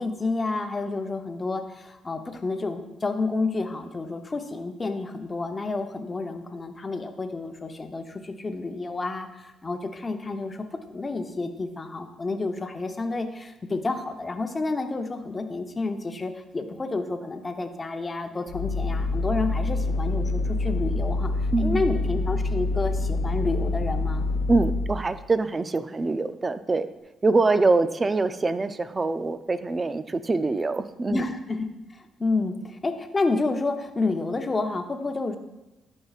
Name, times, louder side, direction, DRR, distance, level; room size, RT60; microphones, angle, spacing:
voice 1, 0.0-10.6 10.9-21.3 21.6-24.3 31.1-31.7 31.9-35.4, left 3 dB, 25° left, 6 dB, 0.7 m, -30 dB
sound 1, 18.5-25.0, left 2 dB, 85° left, 0.9 m, -26 dB
voice 2, 21.5-21.9 24.5-26.9 27.2-31.3, right 3 dB, 25° right, 12 dB, 0.4 m, -24 dB
11.5 x 5.4 x 2.4 m, 1.0 s
cardioid pair, 90°, 0 cm